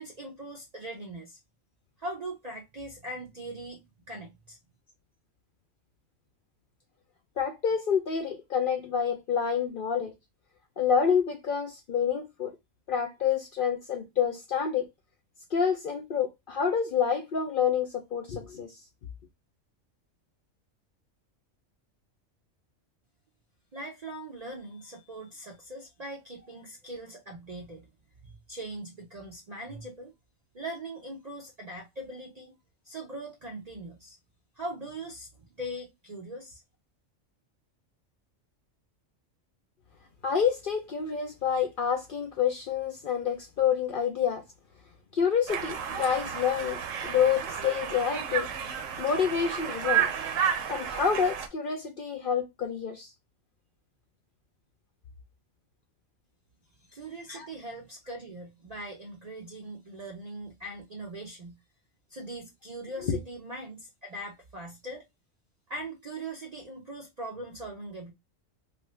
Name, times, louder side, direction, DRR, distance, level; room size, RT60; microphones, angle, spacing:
voice 1, 0.0-1.4 2.0-4.6 23.7-27.9 28.2-30.1 30.5-32.5 32.8-34.2 34.5-35.3 35.6-36.6 56.9-61.6 62.1-65.1 65.7-68.1, right 1 dB, 50° right, 0.5 m, -41 dB
voice 2, 7.4-10.1 10.8-12.5 12.9-14.9 15.5-18.7 40.2-44.4 45.1-46.8 47.0-48.5 49.0-50.1 50.7-53.1 57.3-57.5 63.0-63.2, left 7 dB, 60° left, 0.6 m, -28 dB
Conversation, 45.5-51.5, right 8 dB, 80° right, 1.0 m, -31 dB
2.7 x 2.4 x 3.0 m
omnidirectional pair, 1.3 m